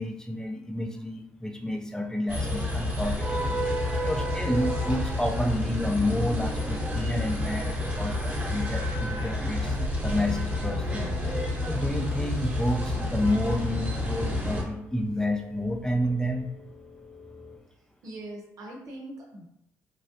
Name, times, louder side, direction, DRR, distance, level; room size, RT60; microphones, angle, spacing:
voice 1, 0.0-3.6 3.9-9.8 10.0-11.2 11.7-16.5, left 1 dB, 10° left, 3 dB, 0.5 m, -30 dB
sound 1, 2.3-14.6, left 1 dB, 25° right, 1.1 m, -29 dB
sound 2, 3.1-17.6, left 1 dB, 85° left, 1.2 m, -48 dB
voice 2, 18.0-19.5, right 1 dB, 65° right, -1 dB, 0.7 m, -41 dB
3.2 x 2.4 x 2.8 m, 0.80 s
supercardioid pair, 65°, 7 cm